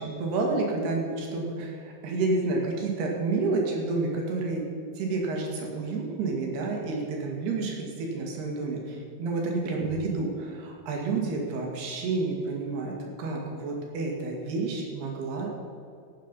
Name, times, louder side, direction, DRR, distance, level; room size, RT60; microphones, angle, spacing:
voice 1, 0.0-4.7 5.0-15.5, right 3 dB, 90° right, 0 dB, 4.4 m, -30 dB
16.5 x 9.1 x 5.6 m, 2.5 s
omnidirectional pair, 4.5 m